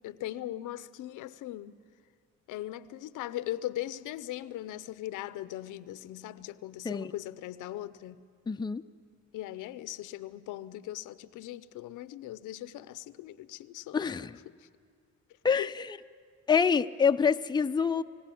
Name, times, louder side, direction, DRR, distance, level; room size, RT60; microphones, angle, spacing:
voice 1, 0.0-1.7 2.5-8.2 9.3-14.1 14.5-14.7 15.6-15.7, left 14 dB, 90° left, 0.7 m, -39 dB
voice 2, 8.5-8.8 13.9-14.3 15.4-16.0 16.5-18.0, left 6 dB, 15° left, 0.5 m, -26 dB
24.5 x 16.5 x 8.5 m
cardioid pair, 90°, 30 cm